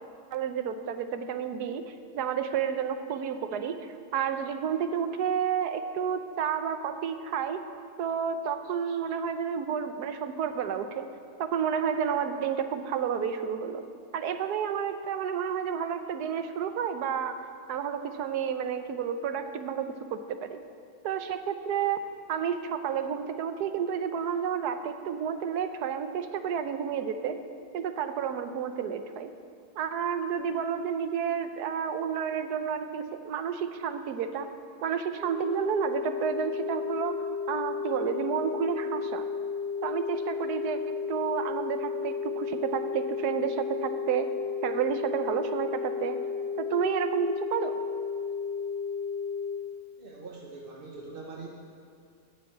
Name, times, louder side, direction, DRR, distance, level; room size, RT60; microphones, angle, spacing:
voice 1, 0.3-3.8 4.1-7.6 8.0-11.1 11.4-13.8 14.1-17.3 17.7-20.6 21.0-22.0 22.3-27.4 27.7-29.3 29.8-34.5 34.8-37.2 37.5-39.3 39.8-44.3 44.6-46.2 46.6-47.8, right 7 dB, 75° right, 9 dB, 1.2 m, -30 dB
sound 1, 35.2-49.6, left 5 dB, 40° left, 3.7 m, -33 dB
voice 2, 50.0-51.5, right 3 dB, 45° right, -1 dB, 0.8 m, -43 dB
9.4 x 7.3 x 8.3 m, 2.4 s
omnidirectional pair, 1.8 m